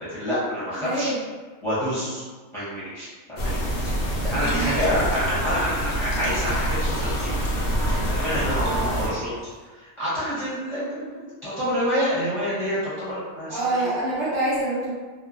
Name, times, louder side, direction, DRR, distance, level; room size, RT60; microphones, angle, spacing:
voice 1, 0.1-1.1 1.6-2.2 2.5-7.3 7.9-9.3 9.7-13.9, equal, 30° left, -12 dB, 0.7 m, -28 dB
voice 2, 0.7-1.2 4.3-4.7 8.5-9.1 13.5-14.9, right 2 dB, 60° right, -8 dB, 0.9 m, -27 dB
sound 1, 3.4-9.1, right 1 dB, 60° left, 0.7 m, -26 dB
sound 2, 4.4-9.1, left 1 dB, 80° left, 1.1 m, -37 dB
2.9 x 2.0 x 2.4 m, 1.4 s
omnidirectional pair, 1.5 m